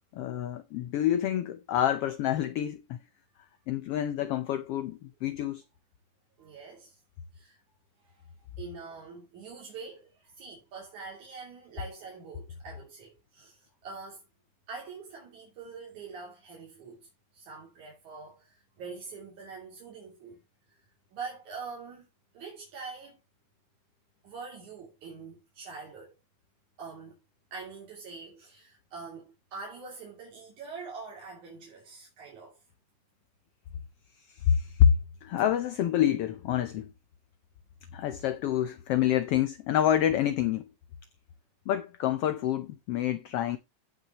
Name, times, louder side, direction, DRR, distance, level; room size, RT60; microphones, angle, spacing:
voice 1, 0.1-3.0 3.7-5.6 34.3-34.9 35.2-36.9 37.9-40.7 41.7-43.6, left 10 dB, 75° left, 1.4 m, -27 dB
voice 2, 6.4-7.0 7.3-7.6 8.0-8.2 8.6-14.2 14.7-17.1 17.3-20.4 20.7-22.1 22.3-23.2 24.2-26.1 26.8-27.2 27.5-32.6 38.2-38.3, right 4 dB, 75° right, 4.2 m, -44 dB
15.5 x 5.8 x 2.9 m
omnidirectional pair, 3.4 m